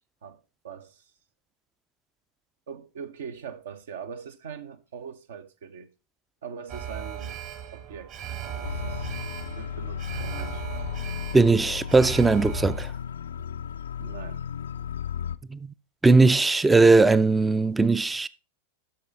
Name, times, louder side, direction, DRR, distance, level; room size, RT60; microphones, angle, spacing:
voice 1, 0.2-1.0 2.7-5.9 6.4-7.4 7.7-8.1 8.4-9.1 9.6-10.8 14.0-14.4, right 7 dB, 60° right, 0.9 m, -41 dB
Alarm, 6.7-12.8, right 9 dB, 40° right, 1.4 m, -37 dB
sound 1, 8.6-15.4, left 8 dB, 65° left, 0.4 m, -34 dB
voice 2, 11.3-12.9 15.5-15.7 16.0-18.3, right 3 dB, 10° right, 0.4 m, -19 dB
12.5 x 5.5 x 4.1 m
figure-of-eight pair, 90°, 0 cm